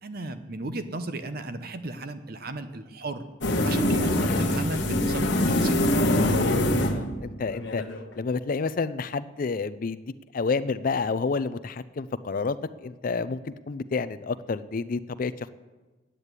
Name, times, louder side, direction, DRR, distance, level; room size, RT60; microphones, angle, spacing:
voice 1, 0.0-6.0, right 2 dB, 50° right, 10 dB, 0.9 m, -35 dB
sound 1, 3.4-8.0, left 1 dB, 65° left, 1.2 m, -24 dB
voice 2, 6.9-7.8 8.1-10.1 10.3-12.6 12.8-15.5, left 4 dB, 45° left, 15 dB, 0.4 m, -29 dB
9.9 x 9.1 x 8.1 m, 1.2 s
head